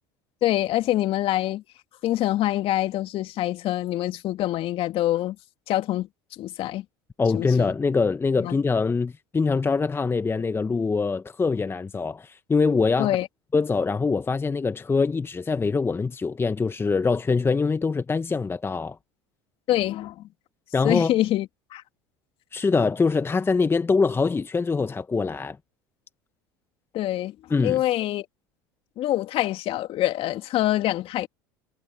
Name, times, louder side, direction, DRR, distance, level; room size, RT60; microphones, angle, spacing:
voice 1, 0.4-1.6 2.0-5.4 5.7-6.1 6.4-6.8 7.3-7.7 8.4-8.6 13.0-13.3 19.7-20.2 20.8-21.8 26.9-27.3 27.6-28.3 29.0-31.3, left 14 dB, 50° left, 2.8 m, -25 dB
voice 2, 7.2-13.2 13.5-19.0 20.7-21.1 22.5-25.6 27.5-27.8, left 4 dB, 20° left, 1.3 m, -24 dB
hypercardioid pair, 75°, 12 cm